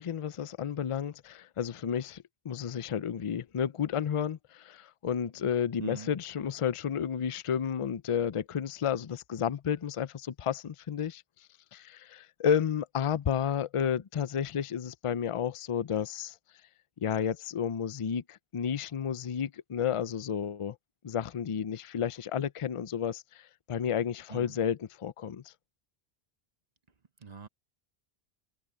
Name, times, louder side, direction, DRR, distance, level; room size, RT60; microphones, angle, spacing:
voice 1, 0.0-11.2 11.7-16.3 17.0-20.8 21.0-25.5, left 8 dB, 40° left, 0.5 m, -32 dB
voice 2, 5.8-6.1 24.3-24.6 27.2-27.5, right 5 dB, 45° right, 0.9 m, -43 dB
omnidirectional pair, 1.1 m